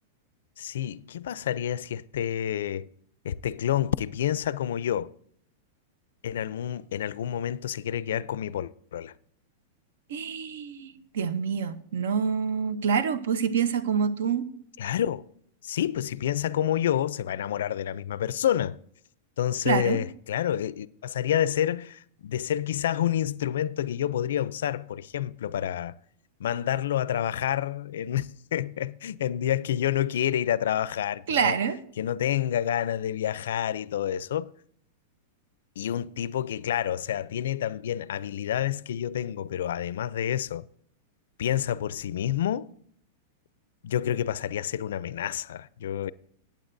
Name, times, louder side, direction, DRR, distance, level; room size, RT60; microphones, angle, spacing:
voice 1, 0.6-2.9 3.2-5.1 6.2-9.1 14.8-15.2 15.6-18.8 19.4-26.0 26.4-31.6 32.0-34.5 35.8-40.7 41.4-42.7 43.8-46.1, left 10 dB, 75° left, 0.4 m, -28 dB
voice 2, 10.1-14.5 19.7-20.0 31.3-31.8, right 6 dB, 70° right, 0.8 m, -26 dB
15.5 x 9.0 x 2.6 m
supercardioid pair, 175°, 0 cm